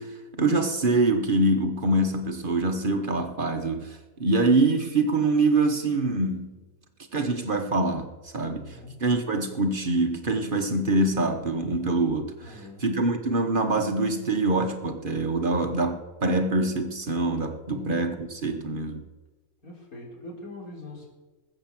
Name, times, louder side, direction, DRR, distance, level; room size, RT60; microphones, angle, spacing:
voice 1, 0.0-6.6 7.1-19.0, right 2 dB, 40° right, 1.3 m, -25 dB
voice 2, 8.5-9.1 12.4-12.9 17.7-18.1 19.6-21.1, left 2 dB, 90° left, 4.5 m, -42 dB
20.0 x 8.0 x 7.5 m
omnidirectional pair, 1.5 m